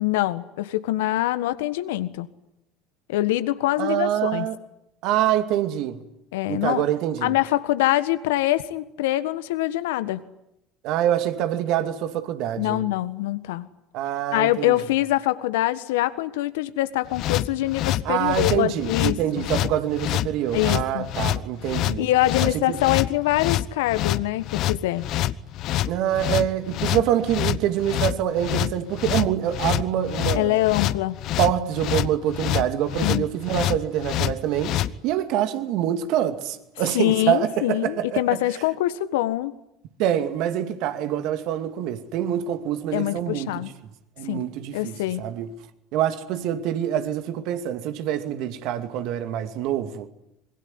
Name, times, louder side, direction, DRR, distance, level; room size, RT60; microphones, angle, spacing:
voice 1, 0.0-2.3 3.1-4.5 6.3-6.8 7.2-10.2 12.6-13.7 14.3-19.5 20.5-21.1 22.0-25.0 30.3-31.2 33.0-33.2 36.9-39.5 42.9-43.7 44.2-44.4 44.7-45.2, left 15 dB, 75° left, 1.5 m, -24 dB
voice 2, 3.8-4.6 5.0-6.0 6.5-7.4 10.8-12.8 13.9-14.8 18.0-22.1 22.4-22.8 25.9-30.6 31.4-38.2 40.0-43.6 44.2-45.5 45.9-50.1, right 11 dB, 60° right, 2.5 m, -25 dB
sound 1, 17.1-34.9, left 14 dB, 55° left, 1.0 m, -26 dB
26.0 x 22.0 x 9.8 m
hypercardioid pair, 75°, 0 cm